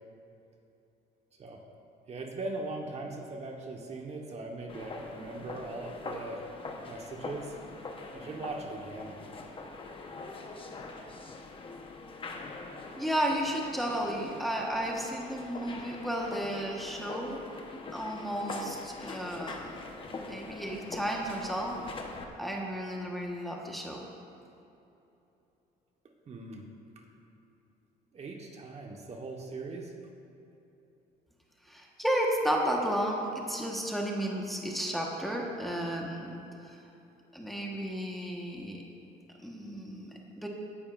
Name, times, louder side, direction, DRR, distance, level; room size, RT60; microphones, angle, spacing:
voice 1, 2.1-6.4 6.8-7.6 8.1-9.2 26.3-26.7 28.1-29.9, right 2 dB, 40° right, 1 dB, 1.3 m, -40 dB
sound 1, 4.7-22.2, left 3 dB, 30° left, 1.1 m, -43 dB
voice 2, 13.0-17.4 17.9-19.7 20.3-21.8 22.4-24.1 31.7-36.4 36.7-36.8 37.3-38.8 39.4-40.5, equal, ahead, -2 dB, 1.3 m, -33 dB
17.5 x 10.5 x 2.5 m, 2.9 s
cardioid pair, 110°, 17 cm